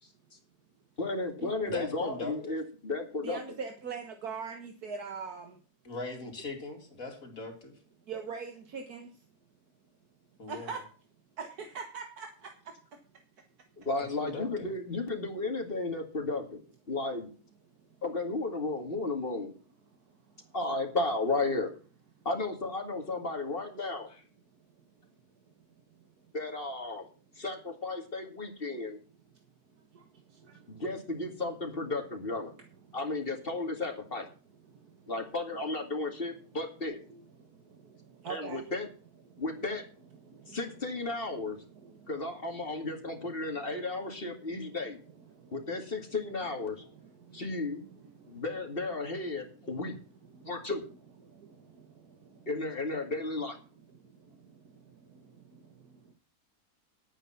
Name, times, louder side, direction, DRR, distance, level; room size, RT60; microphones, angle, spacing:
voice 1, 1.0-3.4 13.8-16.6 16.9-17.3 18.0-19.5 20.5-21.7 22.2-24.1 26.3-27.0 27.4-29.0 30.7-32.5 32.9-34.3 35.1-37.0 38.3-38.9 39.4-39.8 40.5-41.6 42.1-45.0 45.5-46.8 47.3-47.8 48.3-50.0 50.5-50.9 52.5-53.6, left 2 dB, 35° left, 2.4 m, -34 dB
voice 2, 1.7-2.6 5.8-7.8 10.4-10.7 14.0-14.5, left 3 dB, 60° left, 3.2 m, -40 dB
voice 3, 3.2-5.6 8.1-9.2 10.5-10.8 11.4-12.5 12.9-13.0 20.4-20.6 25.6-25.7 29.8-30.8 32.9-33.0 34.7-35.1 37.1-38.7 39.3-39.5 40.2-40.6 41.5-42.1 42.7-42.8 43.2-43.3 43.5-43.6 44.4-44.6 45.3-46.1 46.9-47.4 47.9-48.4 50.3-50.6 51.2-52.5 53.9-56.1, right 5 dB, 75° right, 1.9 m, -44 dB
11.0 x 8.8 x 5.8 m
omnidirectional pair, 1.6 m